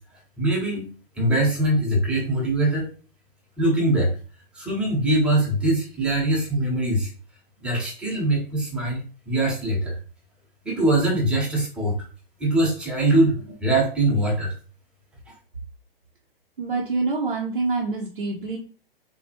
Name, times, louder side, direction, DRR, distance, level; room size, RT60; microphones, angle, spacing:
voice 1, 0.4-0.9 1.2-2.9 3.6-4.1 4.5-7.1 7.6-10.0 10.6-12.0 12.4-14.5, right 1 dB, 5° right, -3 dB, 0.8 m, -22 dB
voice 2, 16.6-18.6, right 3 dB, 70° right, -2 dB, 0.7 m, -26 dB
3.4 x 2.2 x 2.8 m, 0.37 s
figure-of-eight pair, 110°, 29 cm